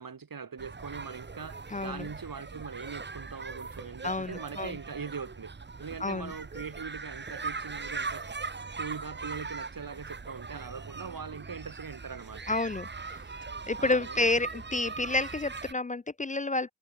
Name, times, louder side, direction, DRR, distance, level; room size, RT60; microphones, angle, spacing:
voice 1, 0.0-5.5 5.8-8.3 8.8-12.6 13.8-14.3, right 5 dB, 85° right, 7.3 m, -41 dB
sound 1, 0.6-15.7, right 4 dB, 30° right, 1.0 m, -40 dB
voice 2, 1.7-2.1 4.0-4.8 6.0-6.3 12.5-13.2 13.6-16.7, left 2 dB, 25° left, 0.4 m, -30 dB
wide cardioid pair, 70°, 33 cm